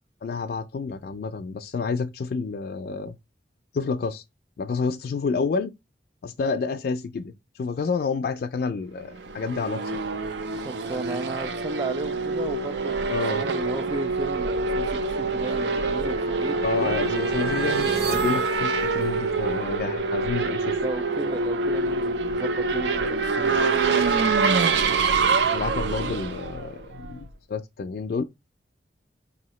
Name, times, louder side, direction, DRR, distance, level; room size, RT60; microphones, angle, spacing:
voice 1, 0.2-3.2 3.7-4.2 4.6-5.7 6.2-7.3 7.6-10.0 13.1-13.4 16.6-20.7 25.5-28.2, left 4 dB, 55° left, 0.3 m, -29 dB
Race car auto racing / Accelerating revving vroom, 9.1-27.3, right 4 dB, 85° right, 0.5 m, -25 dB
voice 2, 10.5-13.0 13.3-17.1 20.8-24.5, right 2 dB, 25° right, 0.3 m, -34 dB
sound 1, 14.5-19.5, right 3 dB, 55° right, 1.0 m, -36 dB
4.8 x 2.8 x 3.0 m
head